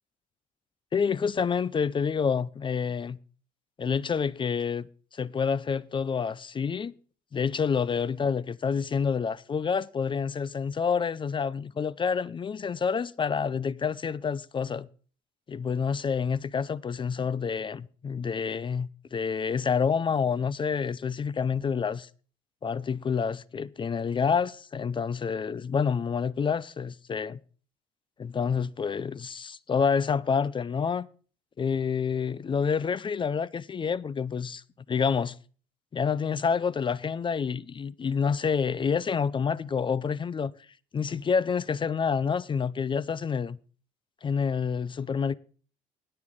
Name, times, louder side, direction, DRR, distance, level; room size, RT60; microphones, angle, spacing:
voice 1, 0.9-3.2 3.8-6.9 7.3-14.9 15.5-22.1 22.6-27.4 28.2-31.1 31.6-34.6 34.9-35.4 35.9-40.5 40.9-43.6 44.2-45.4, left 6 dB, 30° left, 0.5 m, -28 dB
19.5 x 6.7 x 3.6 m
cardioid pair, 110°, 17 cm